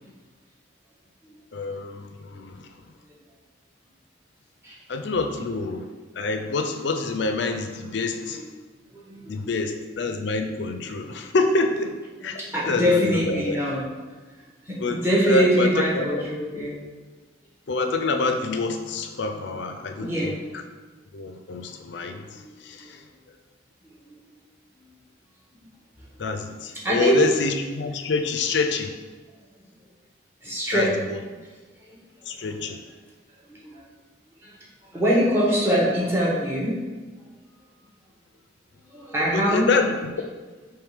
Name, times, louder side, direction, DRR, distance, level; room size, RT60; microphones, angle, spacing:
voice 1, 1.5-2.6 4.9-5.8 6.2-8.4 9.3-11.9 12.2-12.4 12.7-13.6 14.8-15.7 16.0-16.2 17.7-20.3 21.1-23.0 26.2-28.9 30.7-31.2 32.3-32.8 39.2-39.9, left 3 dB, 65° left, 6 dB, 0.4 m, -26 dB
voice 2, 8.9-9.5 12.2-13.8 14.6-16.8 20.0-20.4 22.4-22.5 22.8-22.9 24.1-24.2 26.8-27.2 30.4-31.2 31.8-32.0 33.5-33.8 34.4-34.6 34.9-36.8 38.9-39.7, equal, 10° right, -6 dB, 1.0 m, -24 dB
3.5 x 3.1 x 4.8 m, 1.4 s
head